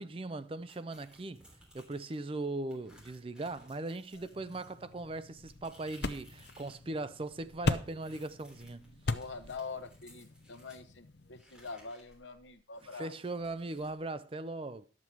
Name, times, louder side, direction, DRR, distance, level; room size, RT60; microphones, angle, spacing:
voice 1, 0.0-1.4 1.7-9.0 13.0-14.9, right 2 dB, 30° right, 0.5 m, -39 dB
sound 1, 0.7-2.3 2.7-6.8 7.1-10.8 11.4-13.9, equal, 5° right, 3.2 m, -60 dB
sound 2, 4.3-11.4, left 3 dB, 60° left, 0.7 m, -39 dB
voice 2, 9.1-13.1, left 4 dB, 75° left, 1.0 m, -45 dB
11.5 x 7.4 x 4.6 m
head